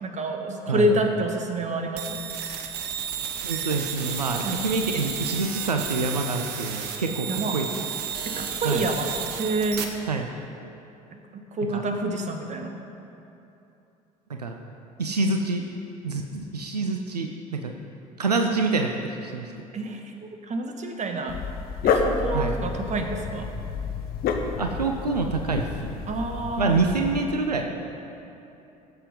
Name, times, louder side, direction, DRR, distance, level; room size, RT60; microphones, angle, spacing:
voice 1, 0.0-2.2 4.4-4.7 7.3-7.6 8.2-9.1 9.4-9.9 11.3-12.8 19.7-21.4 21.8-23.5 26.1-26.8, right 2 dB, 35° right, 4 dB, 1.7 m, -28 dB
sound 1, 2.0-9.8, right 7 dB, 60° right, 1.3 m, -32 dB
voice 2, 3.4-7.7 8.6-8.8 10.1-10.3 11.7-11.8 14.4-14.6 15.0-15.7 16.0-17.7 18.2-19.5 22.3-22.5 24.6-25.9 26.6-27.7, right 3 dB, 90° right, 4 dB, 0.6 m, -26 dB
Dog, 21.3-27.2, left 5 dB, 50° left, 1.2 m, -29 dB
17.0 x 7.8 x 5.4 m, 2.9 s
figure-of-eight pair, 60°, 20 cm